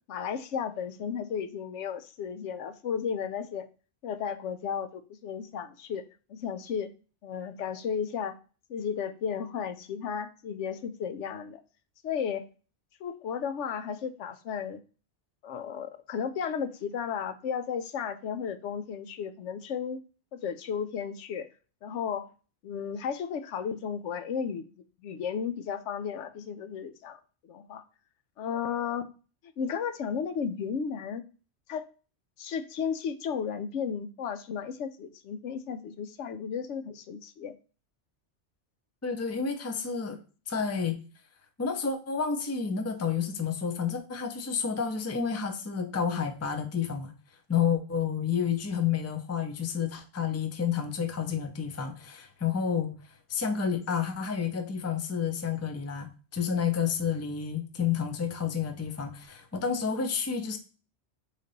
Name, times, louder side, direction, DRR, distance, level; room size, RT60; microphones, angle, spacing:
voice 1, 0.1-3.7 4.0-6.0 6.3-6.9 7.2-8.3 8.7-11.6 12.0-12.4 13.0-14.8 15.4-20.0 20.3-21.5 21.8-22.3 22.6-24.7 25.0-27.8 28.4-29.1 29.6-31.2 31.7-31.9 32.4-37.6, left 7 dB, 85° left, 0.9 m, -34 dB
voice 2, 39.0-40.2 40.5-41.0 41.6-47.1 47.5-52.9 53.3-60.6, left 7 dB, 20° left, 0.5 m, -30 dB
4.0 x 3.3 x 4.0 m
omnidirectional pair, 1.2 m